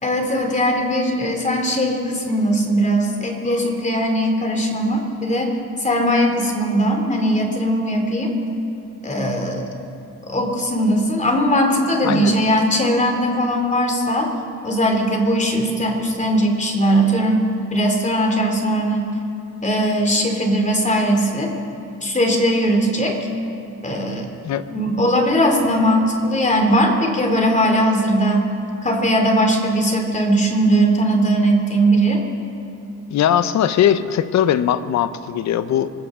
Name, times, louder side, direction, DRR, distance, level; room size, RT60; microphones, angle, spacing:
voice 1, 0.0-8.3 9.0-9.7 10.3-14.3 14.6-17.4 17.7-19.1 19.6-21.5 22.0-23.2 23.8-24.3 24.7-28.5 28.8-32.2, equal, 25° left, 2 dB, 2.7 m, -19 dB
voice 2, 12.0-12.4 24.4-24.6 33.1-35.9, left 10 dB, 65° left, 13 dB, 0.8 m, -19 dB
25.0 x 15.0 x 3.7 m, 2.6 s
cardioid pair, 90°, 30 cm